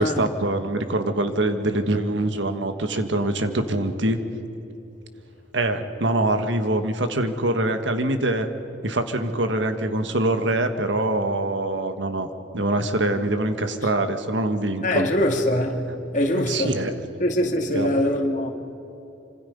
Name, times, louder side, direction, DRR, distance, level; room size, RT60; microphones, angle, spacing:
voice 1, 0.0-4.2 5.5-8.5 8.8-12.3 12.5-15.1 16.3-17.0 17.7-18.0, right 1 dB, 75° right, 1.6 m, -24 dB
voice 2, 14.8-16.8 17.2-18.5, left 1 dB, 40° left, 2.2 m, -23 dB
27.0 x 26.0 x 5.4 m
head